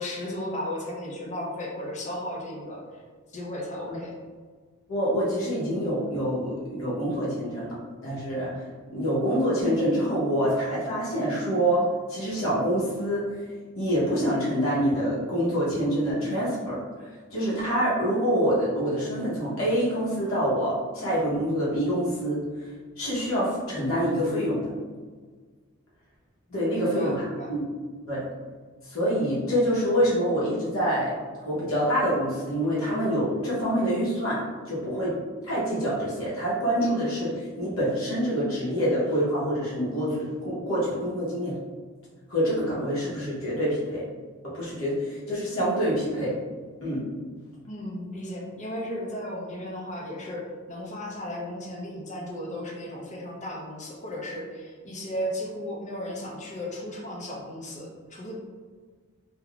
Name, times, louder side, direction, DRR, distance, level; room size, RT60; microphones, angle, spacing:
voice 1, 0.0-3.0 3.3-4.1 26.5-27.5 47.7-58.3, left 1 dB, 35° left, -2 dB, 0.6 m, -35 dB
voice 2, 4.9-7.8 8.0-8.6 8.9-11.8 12.1-13.4 13.8-22.7 23.0-24.7 26.5-27.6 28.1-28.2 28.8-35.2 35.4-41.6 42.3-44.0 44.4-46.3 46.8-47.1, equal, 80° left, -8 dB, 0.9 m, -26 dB
3.6 x 2.2 x 2.3 m, 1.5 s
head